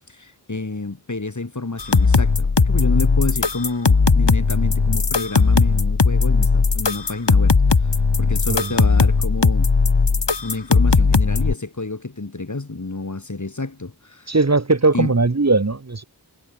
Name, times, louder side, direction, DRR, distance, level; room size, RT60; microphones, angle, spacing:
voice 1, 0.1-7.6 8.2-9.7 10.4-14.3 14.9-15.1, left 3 dB, 45° left, 2.1 m, -29 dB
sound 1, 1.8-11.5, left 4 dB, 85° left, 2.3 m, -17 dB
voice 2, 14.3-16.0, right 3 dB, 40° right, 1.3 m, -18 dB
wide cardioid pair, 50°, 41 cm